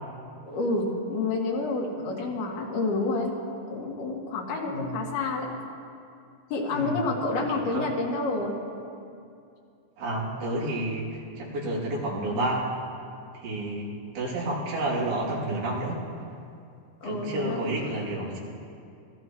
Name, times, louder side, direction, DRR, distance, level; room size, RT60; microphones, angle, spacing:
voice 1, 0.4-3.3 3.7-5.5 6.5-8.6 17.0-17.9, left 3 dB, 90° left, -2 dB, 4.1 m, -29 dB
voice 2, 6.7-7.0 7.4-7.8 10.0-12.7 13.4-13.9 14.1-16.0 17.0-18.4, right 1 dB, 90° right, -5 dB, 4.8 m, -30 dB
26.0 x 18.0 x 3.1 m, 2.5 s
omnidirectional pair, 4.3 m